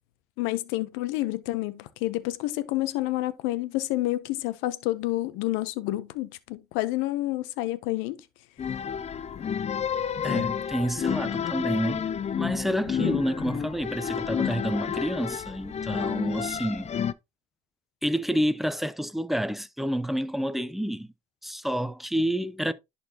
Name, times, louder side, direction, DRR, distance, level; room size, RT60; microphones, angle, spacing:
voice 1, 0.4-8.2 13.0-13.2, left 17 dB, 90° left, 0.7 m, -29 dB
sound 1, 8.6-17.1, left 8 dB, 35° left, 0.5 m, -30 dB
voice 2, 10.2-16.9 18.0-21.1 21.4-22.7, equal, ahead, 0.8 m, -29 dB
11.0 x 4.2 x 2.8 m
supercardioid pair, 75°, 20 cm